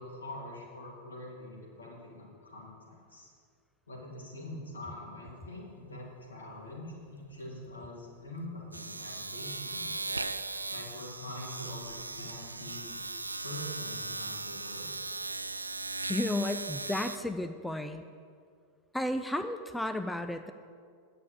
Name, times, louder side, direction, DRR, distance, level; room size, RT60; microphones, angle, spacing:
voice 1, 0.0-3.3 3.9-10.1 10.7-13.0 13.4-14.9, left 1 dB, 75° left, -3 dB, 2.8 m, -44 dB
Domestic sounds home sounds, 5.4-5.6 5.9-17.2, right 3 dB, 80° right, 0.4 m, -38 dB
voice 2, 16.1-18.0 18.9-20.5, left 1 dB, 5° left, 8 dB, 0.4 m, -33 dB
9.7 x 6.9 x 8.2 m, 2.1 s
figure-of-eight pair, 90°, 0 cm